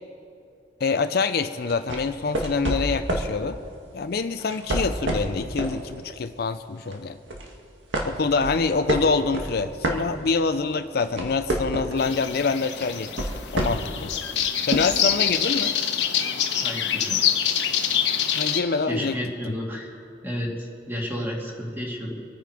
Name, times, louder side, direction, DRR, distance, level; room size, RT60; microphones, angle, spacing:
voice 1, 0.8-3.6 3.9-7.2 8.0-14.1 14.7-15.8 18.3-19.2 19.5-19.6, left 4 dB, 55° left, 10 dB, 0.4 m, -26 dB
sound 1, 1.7-3.4 4.4-5.8 6.2-6.4 6.9-7.5 7.9-10.5 10.9-12.1 12.8-14.0 14.7-14.8, right 1 dB, 85° right, 1.9 m, -28 dB
sound 2, 12.0-18.6, left 9 dB, 70° left, 1.2 m, -25 dB
voice 2, 16.6-17.2 18.9-19.9 20.2-22.1, equal, 10° right, -2 dB, 2.4 m, -31 dB
26.0 x 9.2 x 4.9 m, 2.6 s
head